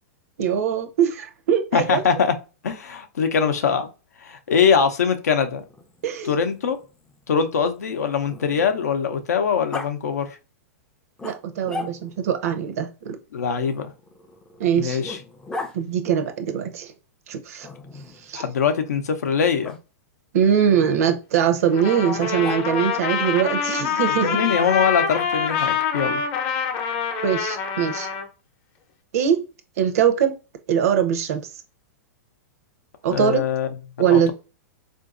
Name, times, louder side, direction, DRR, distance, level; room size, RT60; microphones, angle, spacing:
voice 1, 0.4-2.0 6.0-6.3 11.2-13.2 14.6-15.0 15.7-16.9 17.3-17.7 18.2-18.4 20.3-24.4 27.2-28.1 29.1-29.4 29.8-30.4 30.7-31.5 33.0-33.4 34.0-34.3, right 8 dB, 70° right, 0.6 m, -22 dB
voice 2, 1.7-2.3 2.6-3.9 4.2-5.6 6.3-6.8 7.3-10.3 13.3-13.9 14.8-15.2 18.3-19.8 24.1-26.2 33.1-33.7 34.0-34.3, left 6 dB, 85° left, 0.6 m, -22 dB
Growling, 5.6-9.0 9.7-9.9 11.2-12.3 13.6-15.8 17.6-18.3 19.6-19.8 22.1-23.0, left 3 dB, 10° left, 0.3 m, -38 dB
Trumpet, 21.7-28.3, left 6 dB, 45° left, 0.7 m, -25 dB
3.8 x 2.5 x 2.4 m
hypercardioid pair, 130°, 8 cm